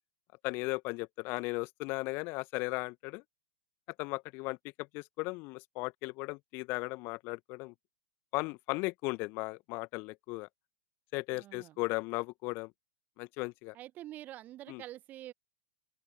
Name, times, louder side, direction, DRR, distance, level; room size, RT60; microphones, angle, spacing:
voice 1, 0.4-3.2 4.0-7.7 8.3-10.5 11.1-12.7 13.2-13.7 14.7-14.8, left 26 dB, 35° left, 1.1 m, -36 dB
voice 2, 11.3-11.8 13.7-15.3, right 14 dB, 30° right, 1.1 m, -46 dB
open air
figure-of-eight pair, 100°, 6 cm